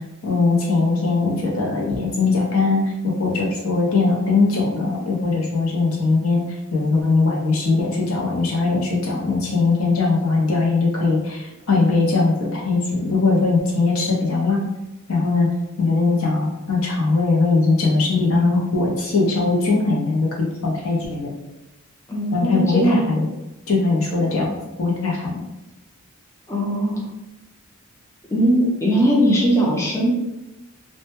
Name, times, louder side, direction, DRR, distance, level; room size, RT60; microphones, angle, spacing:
voice 1, 0.2-6.4 6.7-14.7 15.1-15.5 15.8-21.3 22.3-23.2 23.7-24.5 24.8-25.4, left 3 dB, 70° left, -2 dB, 0.6 m, -20 dB
voice 2, 22.1-23.1 26.5-27.1 28.3-30.1, right 1 dB, 15° left, -5 dB, 0.4 m, -19 dB
2.1 x 2.1 x 2.9 m, 0.96 s
head